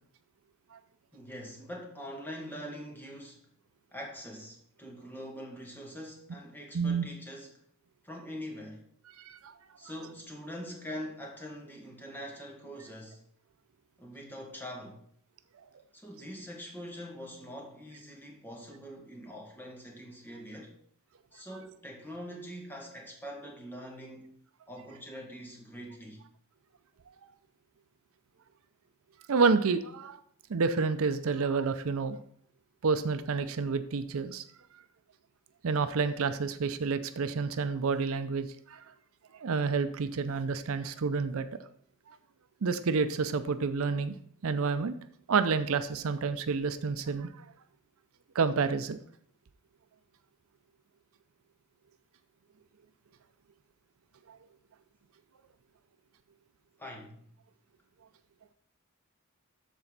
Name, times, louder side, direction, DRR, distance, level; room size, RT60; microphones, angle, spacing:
voice 1, 1.1-3.4 3.9-7.5 8.0-8.8 9.8-13.2 14.0-15.0 15.9-20.7 21.3-24.3 24.7-26.2 56.8-57.3, equal, 10° left, 1.9 m, -43 dB
voice 2, 6.7-7.1 9.2-9.5 29.3-30.2 30.5-32.2 32.8-34.4 35.6-38.9 39.3-41.5 42.6-44.1 44.4-44.9 45.3-47.5 48.3-49.0 54.3-54.4, right 4 dB, 70° right, 0.5 m, -29 dB
13.0 x 4.4 x 4.0 m
head